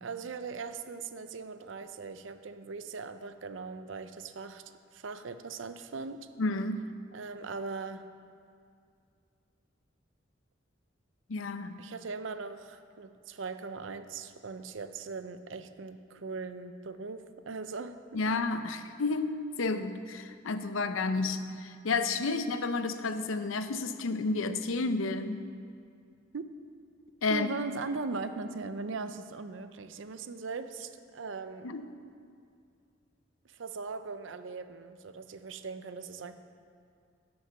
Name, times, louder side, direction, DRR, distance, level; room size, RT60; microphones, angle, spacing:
voice 1, 0.0-4.6 4.9-6.3 7.1-8.0 11.8-18.3 26.3-26.5 27.3-31.7 33.5-36.3, right 4 dB, 70° right, 10 dB, 0.6 m, -39 dB
voice 2, 6.4-6.9 11.3-11.8 18.1-25.4 27.2-27.5 31.6-31.9, left 3 dB, 85° left, 10 dB, 0.6 m, -31 dB
11.5 x 6.4 x 5.9 m, 2.4 s
head